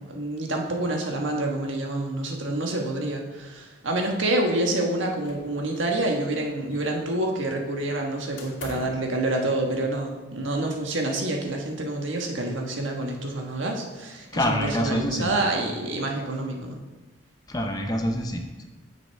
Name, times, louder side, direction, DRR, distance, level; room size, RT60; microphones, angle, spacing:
voice 1, 0.0-16.8, right 2 dB, 80° right, 1 dB, 1.4 m, -27 dB
sound 1, 5.2-6.0 6.3-7.2 8.4-9.1, left 2 dB, 80° left, 1.8 m, -44 dB
voice 2, 14.3-15.3 17.5-18.7, equal, 20° left, 4 dB, 0.7 m, -26 dB
9.5 x 7.6 x 3.4 m, 1.2 s
head